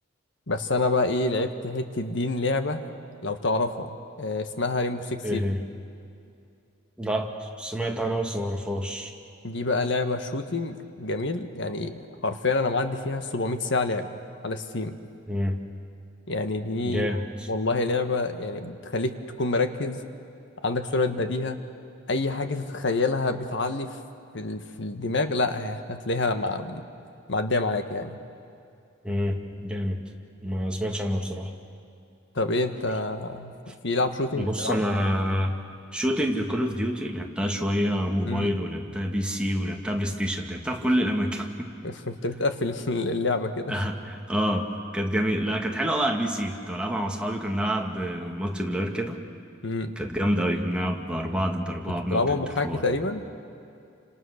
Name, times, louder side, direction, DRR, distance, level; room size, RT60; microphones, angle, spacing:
voice 1, 0.5-2.8 3.2-5.4 9.4-14.1 14.4-15.0 16.3-17.2 17.5-20.0 20.6-21.6 22.1-24.0 24.3-26.8 27.3-28.2 32.3-33.5 33.8-34.8 38.2-38.5 41.8-43.8 49.6-49.9 51.9-53.2, left 3 dB, 65° left, 8 dB, 1.5 m, -27 dB
voice 2, 5.2-5.6 7.0-9.1 15.3-15.6 16.8-17.5 29.0-30.0 30.4-31.5 34.3-35.6 35.9-41.7 43.7-49.2 50.0-52.4 52.6-52.8, equal, 5° right, 1 dB, 1.9 m, -27 dB
29.5 x 26.5 x 6.6 m, 2.6 s
head